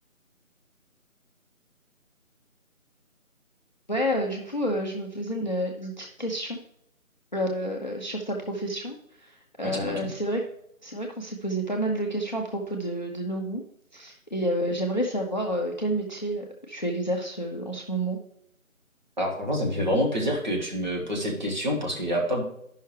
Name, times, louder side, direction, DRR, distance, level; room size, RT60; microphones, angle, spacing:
voice 1, 3.9-6.6 7.3-10.4 10.8-13.6 13.9-18.2, equal, 35° left, 1 dB, 0.6 m, -29 dB
voice 2, 9.6-10.1 19.2-22.4, equal, 35° right, -1 dB, 1.3 m, -27 dB
10.5 x 5.6 x 3.2 m, 0.75 s
figure-of-eight pair, 165°, 41 cm